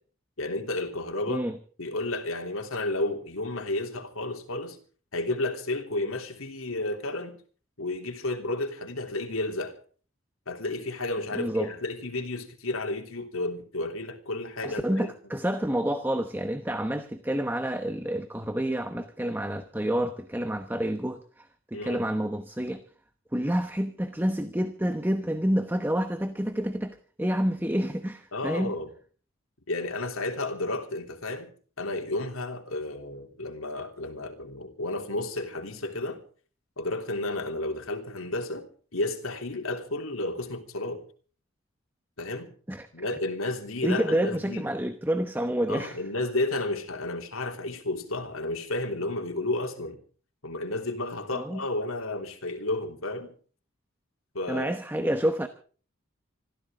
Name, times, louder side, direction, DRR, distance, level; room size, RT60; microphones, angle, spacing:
voice 1, 0.4-1.4 1.8-4.8 5.1-7.4 7.8-9.8 10.5-15.1 21.7-22.0 28.3-28.9 29.7-31.5 31.8-36.2 36.8-38.7 38.9-41.0 42.2-42.5 42.9-44.6 45.7-50.0 50.4-53.3 54.3-54.7 55.0-55.1, left 2 dB, 90° left, 3.3 m, -32 dB
voice 2, 11.3-11.7 14.6-22.8 23.3-28.7 42.7-42.9 43.8-46.0 51.3-51.6 54.5-55.5, equal, 10° right, 1.0 m, -28 dB
26.0 x 14.5 x 3.7 m
head